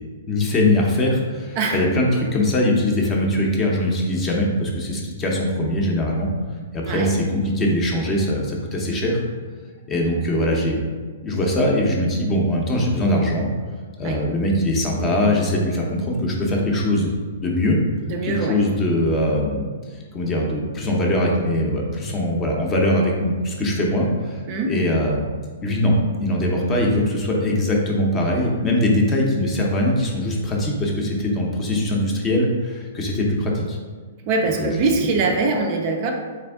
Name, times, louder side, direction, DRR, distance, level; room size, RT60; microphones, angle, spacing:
voice 1, 0.3-6.3 6.7-9.2 9.9-10.8 11.2-13.5 14.0-17.1 17.4-17.8 18.2-19.7 20.1-25.2 25.6-33.8 34.6-34.7 35.0-35.1, left 1 dB, 20° left, -1 dB, 0.6 m, -21 dB
voice 2, 18.0-18.6 24.5-24.7 34.3-36.1, right 3 dB, 35° right, 3 dB, 0.4 m, -22 dB
3.4 x 3.3 x 3.4 m, 1.5 s
hypercardioid pair, 155°, 0 cm